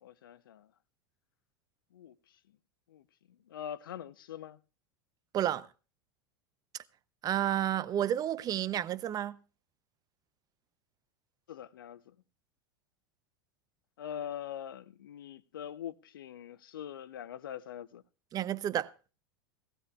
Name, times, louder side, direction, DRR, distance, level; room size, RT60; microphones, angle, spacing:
voice 1, 0.0-0.7 1.9-2.1 2.9-3.0 3.5-4.6 11.5-12.2 14.0-18.0, left 10 dB, 75° left, 0.6 m, -43 dB
voice 2, 5.3-5.7 7.2-9.4 18.3-18.9, right 11 dB, 35° right, 0.7 m, -31 dB
18.0 x 15.5 x 2.4 m
hypercardioid pair, 90°, 12 cm